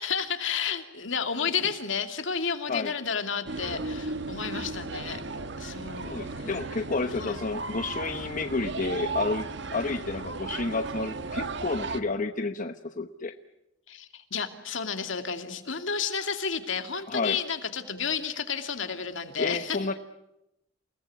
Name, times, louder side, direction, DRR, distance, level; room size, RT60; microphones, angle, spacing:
voice 1, 0.0-5.2 5.6-6.5 7.1-7.4 13.9-19.9, left 6 dB, 70° left, 7 dB, 2.6 m, -31 dB
sound 1, 3.5-12.0, right 3 dB, 60° right, 1.4 m, -35 dB
voice 2, 6.0-13.3 17.1-17.4 19.4-19.9, left 3 dB, 40° left, 8 dB, 1.0 m, -30 dB
29.0 x 19.0 x 9.5 m, 0.87 s
head